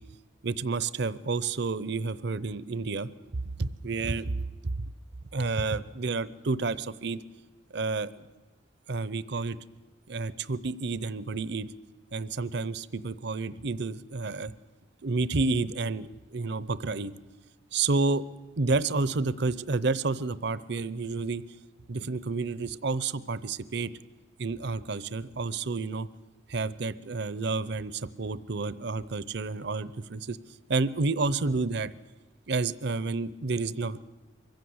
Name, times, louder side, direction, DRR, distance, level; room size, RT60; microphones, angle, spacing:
voice 1, 0.4-4.4 4.6-4.7 5.3-7.2 7.7-8.2 8.9-9.6 10.1-11.7 12.1-14.5 15.0-17.1 17.7-18.2 18.6-21.4 21.9-23.9 24.4-26.1 26.5-30.4 30.7-31.9 32.5-34.0, right 3 dB, 60° right, 17 dB, 0.7 m, -30 dB
23.5 x 15.5 x 7.9 m, 1.2 s
head